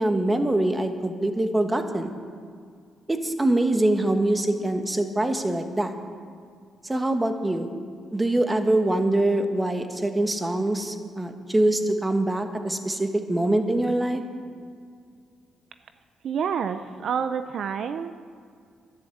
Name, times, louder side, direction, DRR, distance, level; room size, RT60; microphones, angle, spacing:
voice 1, 0.0-2.2 3.1-5.9 6.8-7.7 8.1-14.2, right 1 dB, 15° right, 6 dB, 1.3 m, -24 dB
voice 2, 16.2-18.1, right 7 dB, 65° right, 10 dB, 0.6 m, -28 dB
12.0 x 10.5 x 7.9 m, 2.2 s
cardioid pair, 90°, 0 cm